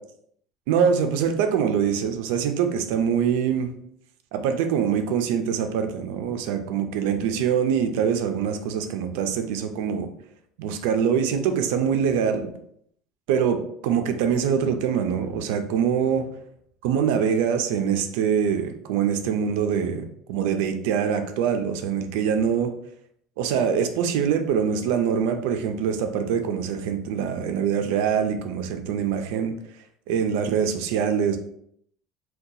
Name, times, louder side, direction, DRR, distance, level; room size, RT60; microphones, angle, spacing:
voice 1, 0.7-3.7 4.3-10.1 10.6-12.5 13.3-16.3 16.8-22.7 23.4-29.6 30.1-31.4, right 7 dB, 85° right, 7 dB, 0.4 m, -24 dB
2.7 x 2.2 x 3.7 m, 0.70 s
cardioid pair, 150°, 0 cm